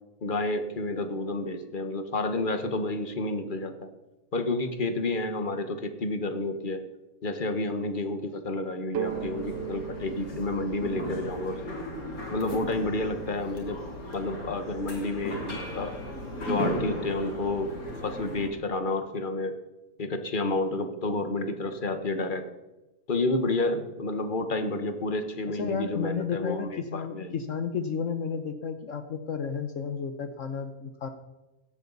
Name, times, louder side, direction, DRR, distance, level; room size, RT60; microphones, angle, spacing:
voice 1, 0.2-3.9 4.3-6.8 7.2-11.6 12.3-13.8 14.1-16.0 16.4-17.7 18.0-19.5 20.0-22.4 23.1-27.4, left 2 dB, 35° left, 8 dB, 1.4 m, -30 dB
sound 1, 8.9-12.6, right 11 dB, 60° right, 0.7 m, -38 dB
sound 2, 9.0-18.5, left 1 dB, 80° left, 3.4 m, -36 dB
voice 2, 25.5-31.1, left 6 dB, 65° left, 8 dB, 1.2 m, -32 dB
16.5 x 12.5 x 4.1 m, 1.0 s
omnidirectional pair, 1.5 m